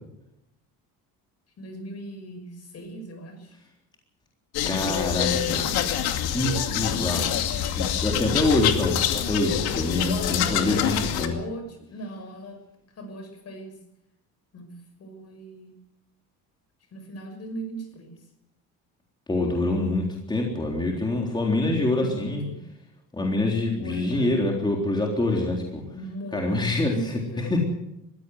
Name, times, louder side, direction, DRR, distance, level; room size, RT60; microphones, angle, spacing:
voice 1, 1.6-3.6 4.8-5.9 10.7-12.6 13.0-13.8 14.5-15.7 16.9-18.2 21.7-22.6 23.8-24.5 25.9-26.6 26.9-27.6, right 1 dB, 45° left, 7 dB, 6.0 m, -38 dB
sound 1, 4.5-11.3, left 10 dB, 85° left, 2.5 m, -26 dB
voice 2, 4.6-5.6 6.3-7.3 7.8-11.4 19.3-22.4 23.1-25.8 26.3-27.6, left 2 dB, 10° left, 0 dB, 3.7 m, -25 dB
21.0 x 16.0 x 8.0 m, 0.83 s
cardioid pair, 135°, 36 cm